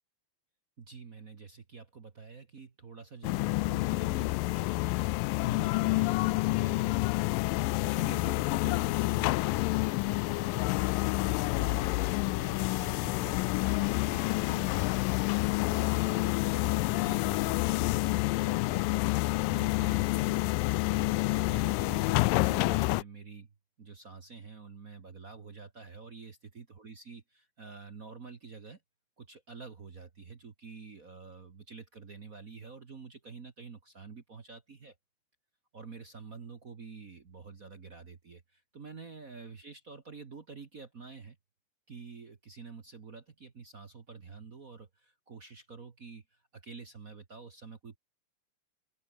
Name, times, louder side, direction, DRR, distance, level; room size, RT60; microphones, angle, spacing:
voice 1, 0.8-7.0 7.8-14.9 15.6-20.4 20.8-23.5 23.8-28.8 29.2-34.9 35.7-41.4 41.9-48.0, right 5 dB, 45° right, 1.1 m, -48 dB
sound 1, 3.2-23.0, left 22 dB, 85° left, 2.2 m, -28 dB
open air
omnidirectional pair, 3.9 m